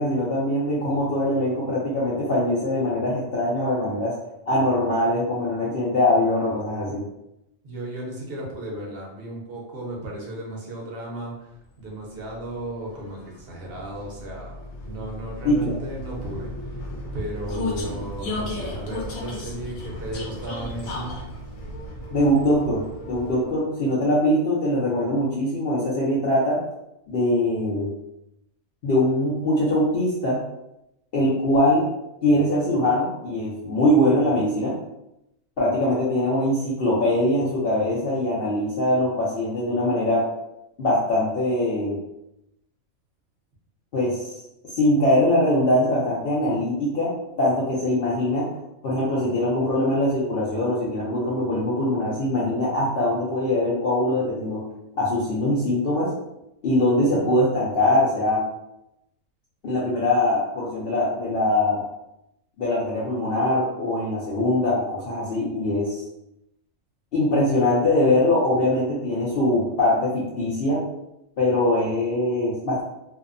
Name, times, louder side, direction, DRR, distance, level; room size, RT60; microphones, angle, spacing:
voice 1, 0.0-4.1 4.5-7.0 15.4-15.8 22.1-26.6 27.1-27.9 28.8-30.4 31.1-31.9 32.2-34.7 35.6-40.3 40.8-42.0 43.9-44.4 44.7-47.1 47.4-48.5 48.8-54.6 55.0-56.1 56.6-58.4 59.6-61.9 62.6-66.0 67.1-70.8 71.4-72.8, left 1 dB, 55° left, -7 dB, 0.7 m, -22 dB
voice 2, 7.6-16.5 17.1-21.2, right 1 dB, 50° right, -3 dB, 0.9 m, -34 dB
Vehicle, 11.8-23.7, left 1 dB, 80° left, 1.0 m, -35 dB
2.7 x 2.1 x 2.4 m, 0.85 s
omnidirectional pair, 1.4 m